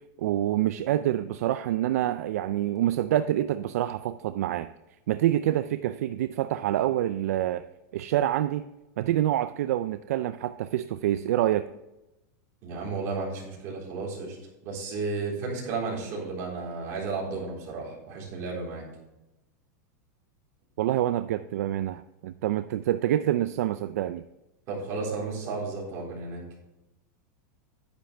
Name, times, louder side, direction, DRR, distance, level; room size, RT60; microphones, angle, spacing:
voice 1, 0.2-4.7 5.1-7.6 7.9-8.7 9.0-11.7 20.8-24.2, right 13 dB, 60° right, 12 dB, 0.4 m, -26 dB
voice 2, 12.6-14.4 14.6-18.8 24.7-26.4, right 4 dB, 30° right, -4 dB, 3.8 m, -33 dB
10.5 x 9.9 x 3.4 m, 0.96 s
supercardioid pair, 180°, 9 cm